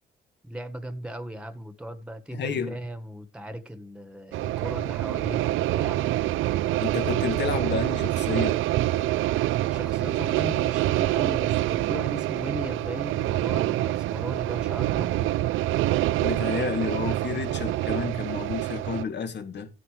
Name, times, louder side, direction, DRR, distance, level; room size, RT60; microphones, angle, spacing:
voice 1, 0.4-6.1 9.7-15.3, right 1 dB, 5° right, 1.7 m, -37 dB
voice 2, 2.3-2.8 6.8-8.6 16.2-19.7, left 5 dB, 60° left, 2.8 m, -30 dB
sound 1, 4.3-19.0, right 15 dB, 85° right, 0.5 m, -26 dB
14.5 x 9.6 x 3.3 m
cardioid pair, 90°, 20 cm